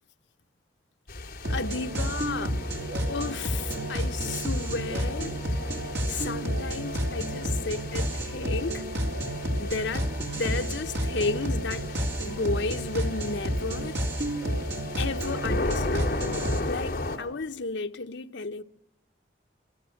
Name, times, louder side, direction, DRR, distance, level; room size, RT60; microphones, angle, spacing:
sound 1, 1.1-17.2, left 2 dB, 50° left, 3.0 m, -37 dB
sound 2, 1.4-16.6, equal, 75° right, 3.9 m, -30 dB
voice 1, 1.5-2.6 3.1-5.4 6.1-8.8 9.6-11.9 12.2-14.0 15.0-16.1 16.7-18.6, left 3 dB, 80° left, 0.9 m, -33 dB
29.0 x 24.0 x 6.5 m
head